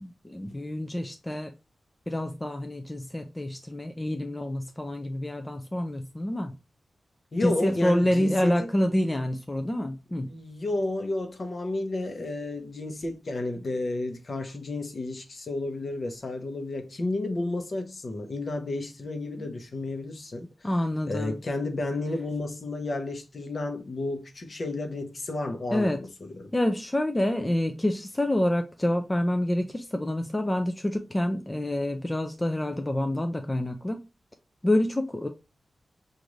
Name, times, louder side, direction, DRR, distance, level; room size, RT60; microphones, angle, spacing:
voice 1, 0.0-1.5 2.1-6.6 7.4-10.3 19.4-19.5 20.6-21.4 25.7-26.0 26.5-34.0 34.6-35.3, left 1 dB, 15° left, 0.4 m, -27 dB
voice 2, 7.3-8.7 10.2-20.7 21.1-26.1 26.3-26.5, left 2 dB, 50° left, 0.8 m, -32 dB
5.0 x 2.5 x 3.1 m
wide cardioid pair, 100°, 0 cm